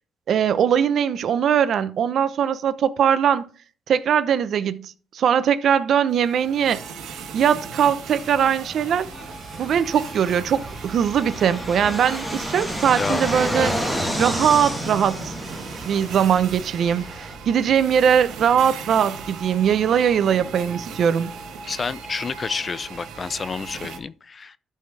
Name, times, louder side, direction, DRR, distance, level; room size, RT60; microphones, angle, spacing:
voice 1, 0.3-3.5 3.9-6.8 7.3-9.1 9.6-13.7 14.2-15.3 15.9-21.3, right 8 dB, 65° right, 0.7 m, -21 dB
sound 1, 6.1-24.0, right 5 dB, 85° right, 1.4 m, -38 dB
Fixed-wing aircraft airplane, 8.1-17.4, equal, 5° left, 2.4 m, -31 dB
voice 2, 21.6-24.6, left 5 dB, 35° left, 0.5 m, -29 dB
12.5 x 5.6 x 3.3 m
cardioid pair, 90°, 0 cm